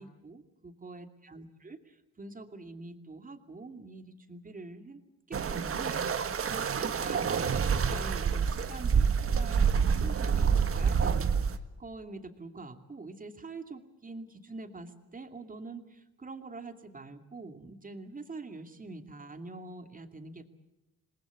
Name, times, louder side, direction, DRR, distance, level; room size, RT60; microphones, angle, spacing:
voice 1, 0.0-5.0 5.3-11.3 11.8-20.5, right 3 dB, 25° right, 7 dB, 2.6 m, -45 dB
sound 1, 5.3-11.6, right 6 dB, 45° right, 1.6 m, -27 dB
27.0 x 20.0 x 8.2 m, 0.90 s
cardioid pair, 90°, 30 cm